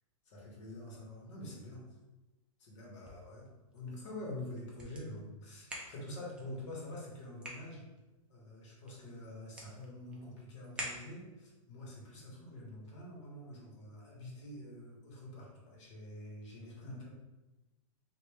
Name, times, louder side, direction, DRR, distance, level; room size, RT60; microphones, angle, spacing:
voice 1, 0.3-1.8 2.6-3.4 3.7-7.8 8.3-17.1, left 1 dB, 60° left, -3 dB, 1.3 m, -46 dB
sound 1, 2.8-11.5, right 1 dB, 5° right, 0.5 m, -50 dB
3.0 x 2.5 x 3.4 m, 1.1 s
hypercardioid pair, 145°, 18 cm